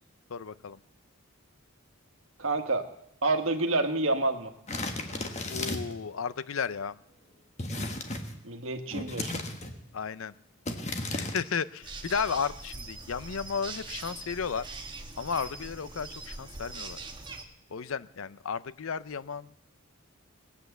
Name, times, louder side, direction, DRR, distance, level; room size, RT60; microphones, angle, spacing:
voice 1, 0.3-0.8 5.5-7.0 9.9-10.3 11.1-14.7 15.2-17.0 17.7-19.6, left 6 dB, 70° left, 17 dB, 0.5 m, -34 dB
voice 2, 2.4-2.9 3.2-4.5 8.4-9.4, right 2 dB, 65° right, 7 dB, 1.4 m, -28 dB
sound 1, 4.7-6.0 7.6-8.4 8.9-9.8 10.7-11.4, left 2 dB, 30° left, 1.3 m, -34 dB
sound 2, 11.8-17.4, right 3 dB, 20° right, 1.1 m, -42 dB
19.0 x 8.2 x 8.0 m, 0.74 s
head